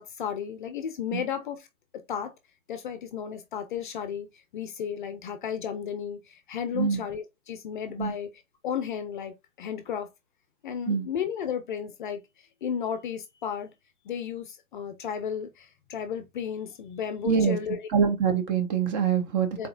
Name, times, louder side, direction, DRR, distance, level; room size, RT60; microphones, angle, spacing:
voice 1, 0.0-1.7 2.1-2.3 2.7-8.3 8.6-10.1 10.6-13.7 14.0-17.9 19.6-19.7, left 8 dB, 35° left, 0.7 m, -34 dB
voice 2, 17.2-17.6 17.9-19.7, right 6 dB, 30° right, 1.2 m, -24 dB
4.1 x 4.0 x 2.5 m
hypercardioid pair, 140°, 43 cm